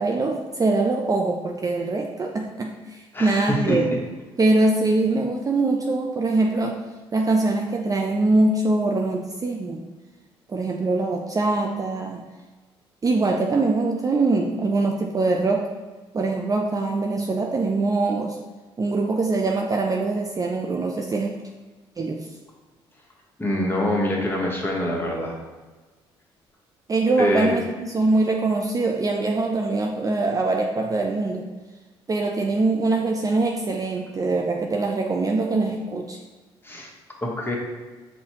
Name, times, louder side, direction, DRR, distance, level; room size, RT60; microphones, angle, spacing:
voice 1, 0.0-3.9 4.4-6.8 7.1-9.8 10.5-12.2 13.0-15.7 16.1-18.4 18.8-21.4 22.0-22.3 26.9-31.5 32.1-36.2, right 3 dB, 30° right, 1 dB, 0.4 m, -23 dB
voice 2, 3.1-3.8 23.4-25.3 27.2-27.5 36.6-36.9 37.2-37.6, left 1 dB, 15° left, -2 dB, 1.2 m, -25 dB
5.4 x 2.7 x 2.9 m, 1.3 s
hypercardioid pair, 55°, 12 cm